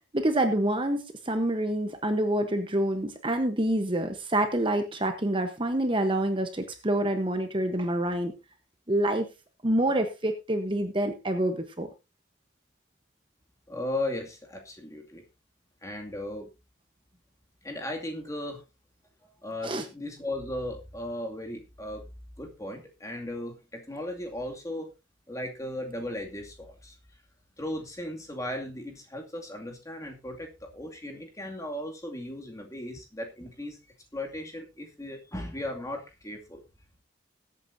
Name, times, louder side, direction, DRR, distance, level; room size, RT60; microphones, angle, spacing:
voice 1, 0.1-8.3 8.9-9.3 9.6-11.9 19.6-19.8, right 1 dB, 25° right, 7 dB, 1.1 m, -27 dB
voice 2, 13.7-15.2 15.8-16.5 17.6-18.6 19.4-22.1 22.4-24.9 25.3-26.9 27.6-33.8 34.1-36.6, left 1 dB, 15° left, 1 dB, 2.4 m, -36 dB
21.0 x 8.6 x 2.7 m, 0.27 s
head